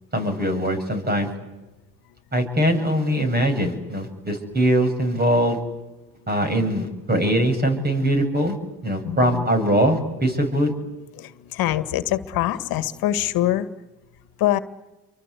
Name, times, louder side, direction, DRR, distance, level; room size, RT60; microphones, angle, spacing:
voice 1, 0.1-1.3 2.3-5.6 6.3-8.6 8.8-10.7, right 1 dB, 25° right, 6 dB, 8.0 m, -22 dB
voice 2, 9.0-9.4 11.2-13.7 14.4-14.6, left 13 dB, 70° left, 12 dB, 1.9 m, -24 dB
29.5 x 24.0 x 8.4 m, 1.1 s
supercardioid pair, 80°, 37 cm